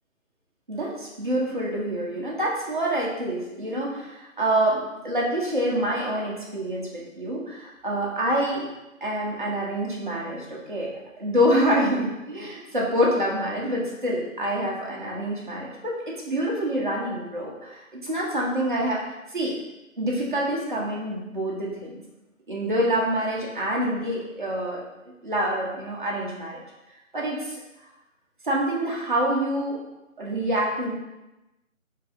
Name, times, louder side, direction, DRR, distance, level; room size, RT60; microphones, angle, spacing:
voice 1, 0.7-8.7 9.0-10.9 11.2-19.0 19.3-19.6 20.0-21.9 22.5-24.8 25.2-26.6 27.1-27.6 28.4-29.8 30.2-30.9, right 1 dB, 35° right, -4 dB, 0.7 m, -26 dB
3.9 x 2.6 x 2.5 m, 1.0 s
figure-of-eight pair, 165°, 41 cm